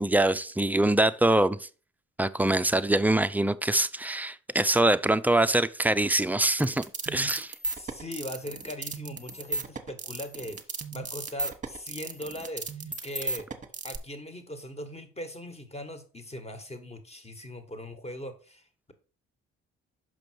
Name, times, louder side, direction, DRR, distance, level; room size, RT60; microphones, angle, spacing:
voice 1, 0.0-1.7 2.2-7.5, right 1 dB, 5° right, 0.4 m, -24 dB
sound 1, 6.5-14.0, right 3 dB, 25° right, 1.2 m, -35 dB
voice 2, 7.7-10.6 10.9-13.5 13.8-18.9, left 1 dB, 20° left, 1.5 m, -40 dB
6.2 x 5.2 x 4.6 m
supercardioid pair, 60°, 31 cm